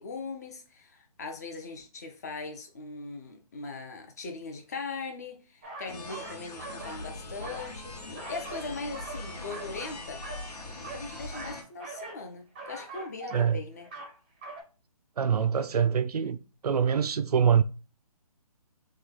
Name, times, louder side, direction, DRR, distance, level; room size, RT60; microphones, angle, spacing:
voice 1, 0.0-10.2 10.7-13.9, left 4 dB, 25° left, 0.5 m, -40 dB
sound 1, 5.6-7.1 7.3-8.7 8.9-10.5 10.7-12.2 12.5-13.5 13.8-14.1 14.4-14.6, right 3 dB, 15° right, 0.6 m, -43 dB
sound 2, 5.9-11.6, left 2 dB, 85° left, 1.0 m, -41 dB
voice 2, 15.2-16.4 16.6-17.6, right 7 dB, 80° right, 0.4 m, -24 dB
3.2 x 2.2 x 3.6 m
hypercardioid pair, 160°, 20 cm